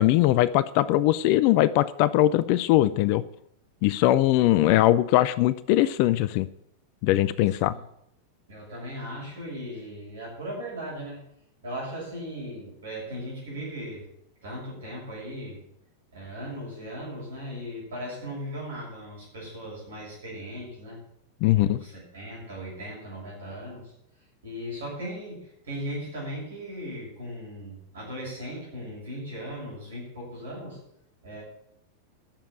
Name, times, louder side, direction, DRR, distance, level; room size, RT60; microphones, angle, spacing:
voice 1, 0.0-3.2 3.8-6.5 7.0-7.7 21.4-21.8, left 15 dB, 45° left, 16 dB, 0.4 m, -21 dB
voice 2, 7.4-7.8 8.5-11.2 11.6-14.0 14.4-15.7 16.1-21.0 21.5-23.9 24.4-30.8 31.2-31.4, equal, 65° right, -4 dB, 6.7 m, -38 dB
10.5 x 7.2 x 8.7 m, 0.74 s
figure-of-eight pair, 90°, 0 cm